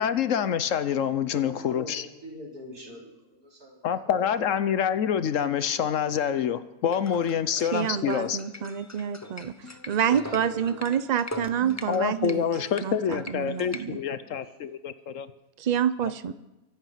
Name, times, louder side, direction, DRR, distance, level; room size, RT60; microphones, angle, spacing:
voice 1, 0.0-2.0 3.8-8.4 11.9-15.3, left 8 dB, 65° left, 13 dB, 1.0 m, -26 dB
voice 2, 1.3-4.6 7.2-7.9 9.6-9.8 10.0-10.9 14.0-14.5, equal, 85° right, -3 dB, 4.5 m, -45 dB
sound 1, 6.9-13.8, left 2 dB, 20° left, 0.4 m, -42 dB
voice 3, 7.7-12.4 12.8-14.0 15.6-16.3, right 9 dB, 55° right, 14 dB, 0.5 m, -28 dB
24.0 x 8.1 x 5.8 m, 1.0 s
omnidirectional pair, 1.5 m